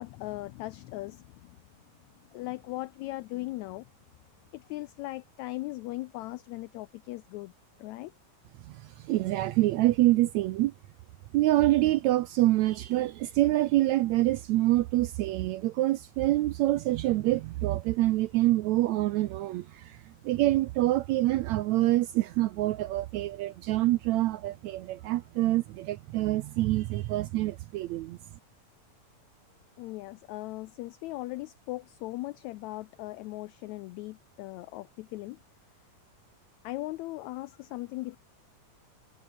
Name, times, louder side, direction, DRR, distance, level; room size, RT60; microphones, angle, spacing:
voice 1, 0.0-1.6 2.3-3.9 4.5-7.5 7.8-8.1 29.8-35.4 36.6-38.2, left 19 dB, 90° left, 1.6 m, -38 dB
voice 2, 8.7-10.7 11.3-20.0 20.2-28.2, right 16 dB, 80° right, 1.7 m, -26 dB
omnidirectional pair, 3.8 m